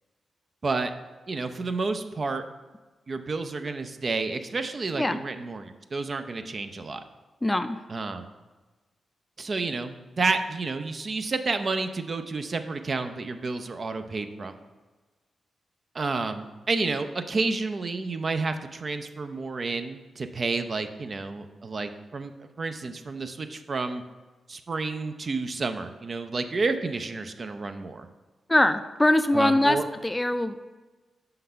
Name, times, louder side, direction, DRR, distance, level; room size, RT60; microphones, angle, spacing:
voice 1, 1.3-2.4 3.1-7.0 7.9-8.2 9.4-14.6 15.9-24.0 24.5-28.1 29.3-29.8, right 3 dB, 50° right, 8 dB, 0.5 m, -30 dB
voice 2, 7.4-7.8 28.5-29.8 30.0-30.6, left 1 dB, 15° left, 11 dB, 0.4 m, -22 dB
5.2 x 3.9 x 5.6 m, 1.3 s
supercardioid pair, 50°, 0 cm